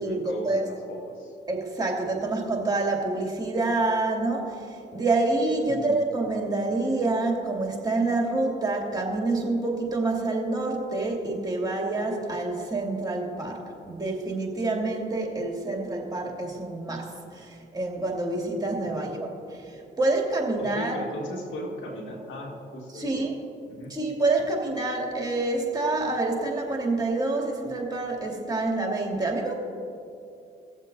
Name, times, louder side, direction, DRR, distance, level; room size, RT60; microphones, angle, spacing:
voice 1, 0.0-1.4 5.7-5.9 18.8-19.1 20.6-23.3 23.7-24.0, equal, 70° left, 1 dB, 1.8 m, -37 dB
voice 2, 1.5-19.3 19.5-21.0 22.9-23.3 23.9-29.5, right 2 dB, 20° right, -1 dB, 2.5 m, -27 dB
19.5 x 7.3 x 2.7 m, 2.6 s
hypercardioid pair, 55°, 20 cm